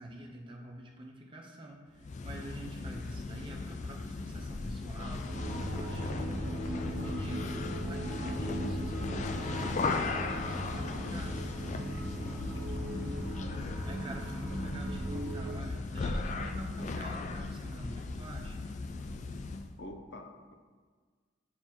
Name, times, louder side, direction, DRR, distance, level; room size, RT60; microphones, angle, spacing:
voice 1, 0.0-11.5 13.8-18.7, right 1 dB, 25° right, 0 dB, 0.8 m, -47 dB
sound 1, 2.0-19.7, left 3 dB, 40° left, 0.3 m, -37 dB
sound 2, 5.3-15.6, right 1 dB, 55° right, 0.7 m, -38 dB
voice 2, 12.1-12.9 19.8-20.5, left 1 dB, 70° left, 3 dB, 0.7 m, -48 dB
8.6 x 3.0 x 4.3 m, 1.5 s
head